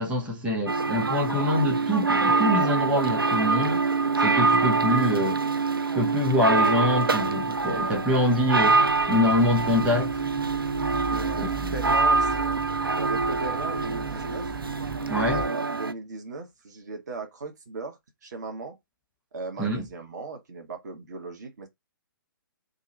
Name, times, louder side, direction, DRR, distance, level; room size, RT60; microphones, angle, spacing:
voice 1, 0.0-3.8 4.2-5.4 5.9-8.8 9.1-10.2 11.4-11.5 15.1-15.4 19.6-19.8, left 1 dB, 10° right, 1.0 m, -25 dB
sound 1, 0.7-15.9, right 4 dB, 85° right, 0.4 m, -25 dB
sound 2, 7.6-15.5, right 5 dB, 25° right, 0.5 m, -39 dB
voice 2, 11.1-12.6 12.8-14.5 15.3-18.8 19.3-21.7, right 3 dB, 50° right, 1.0 m, -37 dB
2.7 x 2.5 x 4.0 m
figure-of-eight pair, 125°, 12 cm